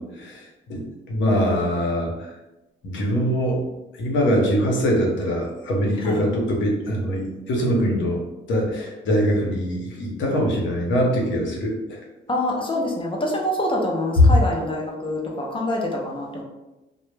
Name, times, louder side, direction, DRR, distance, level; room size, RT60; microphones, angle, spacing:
voice 1, 0.7-2.1 2.8-3.7 4.0-8.2 8.5-12.0 14.2-14.3, equal, 70° left, -1 dB, 0.7 m, -22 dB
voice 2, 12.3-16.4, left 1 dB, 25° left, -1 dB, 0.4 m, -25 dB
2.1 x 2.0 x 3.1 m, 1.0 s
cardioid pair, 90°, 20 cm